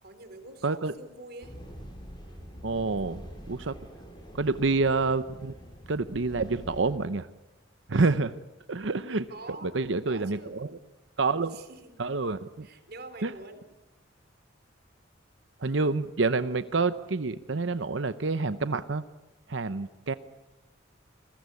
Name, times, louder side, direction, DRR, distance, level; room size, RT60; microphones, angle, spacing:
voice 1, 0.0-1.6 9.3-9.8 10.1-10.6 11.5-11.9 12.6-13.6, right 2 dB, 55° right, 8 dB, 3.8 m, -45 dB
voice 2, 0.6-0.9 2.6-3.2 3.5-3.8 4.3-5.5 5.9-7.3 7.9-8.3 8.7-9.3 9.6-10.7 11.2-11.6 12.0-12.7 13.2-13.3 15.6-19.0 19.5-20.1, right 3 dB, 70° right, 12 dB, 0.8 m, -27 dB
sound 1, 1.4-7.0, equal, 25° left, 6.5 m, -45 dB
28.5 x 21.0 x 8.4 m, 1.1 s
head